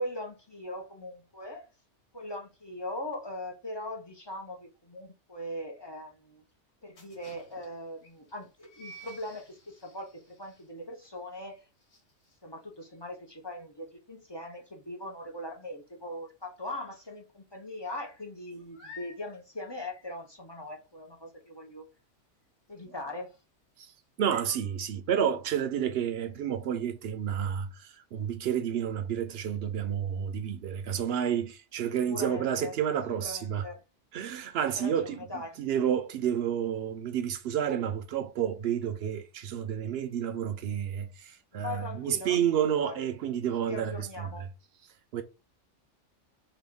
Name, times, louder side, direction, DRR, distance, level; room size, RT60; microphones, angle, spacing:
voice 1, 0.0-1.7 2.1-6.4 6.8-11.7 12.4-21.9 22.7-23.4 32.0-32.7 33.1-33.8 34.7-35.7 41.5-42.4 42.8-43.3 43.6-44.5, left 1 dB, 30° left, 0.5 m, -40 dB
sound 1, 6.9-16.4 16.7-17.1 17.3-24.8, left 1 dB, 85° left, 1.8 m, -54 dB
voice 2, 24.2-33.7 34.1-35.2 35.6-44.3 45.1-45.2, right 9 dB, 65° right, 0.7 m, -30 dB
3.8 x 2.2 x 3.5 m
omnidirectional pair, 1.2 m